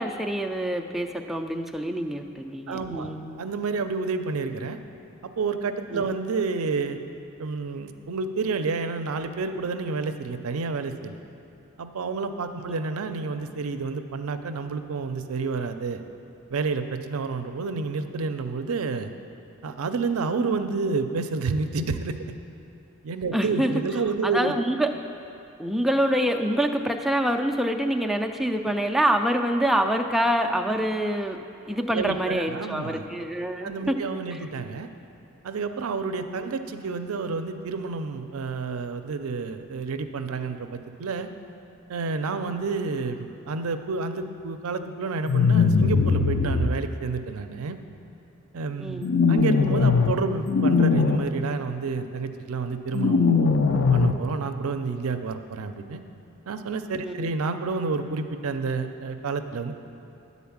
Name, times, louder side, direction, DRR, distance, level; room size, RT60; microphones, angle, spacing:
voice 1, 0.0-3.4 5.9-6.0 23.3-23.7 24.2-24.9 25.6-34.0 34.3-34.4 48.8-49.1 57.0-57.3, right 1 dB, ahead, 3 dB, 0.3 m, -26 dB
voice 2, 2.7-3.1 3.4-4.8 5.4-7.0 7.4-11.2 11.8-16.0 16.5-19.1 19.6-22.2 23.0-24.6 31.9-33.1 33.6-34.9 35.4-41.3 41.9-47.8 48.5-49.0 49.3-53.3 53.9-56.0 56.5-59.7, right 4 dB, 70° right, 8 dB, 0.5 m, -29 dB
sound 1, 45.3-46.7 49.0-50.1 50.5-51.2 52.9-54.1, left 5 dB, 60° left, 0.5 m, -20 dB
10.0 x 4.1 x 7.2 m, 2.7 s
head